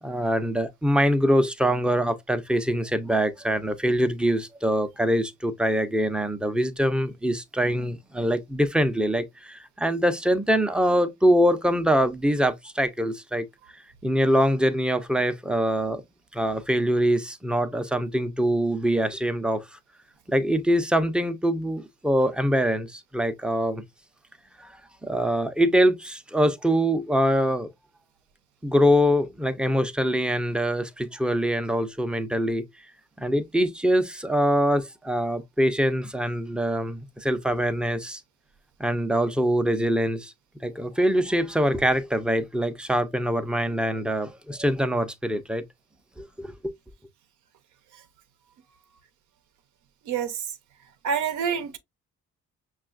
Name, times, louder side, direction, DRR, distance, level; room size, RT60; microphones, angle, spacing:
voice 1, 0.0-13.5 14.0-16.0 16.3-19.6 20.3-23.8 24.6-24.7 25.0-27.7 28.6-32.7 33.2-38.2 38.8-40.3 40.6-45.6 46.2-46.7, equal, 5° right, 0.4 m, -24 dB
voice 2, 51.0-51.8, right 7 dB, 75° right, 0.6 m, -26 dB
5.5 x 2.3 x 2.4 m
cardioid pair, 90°, 30 cm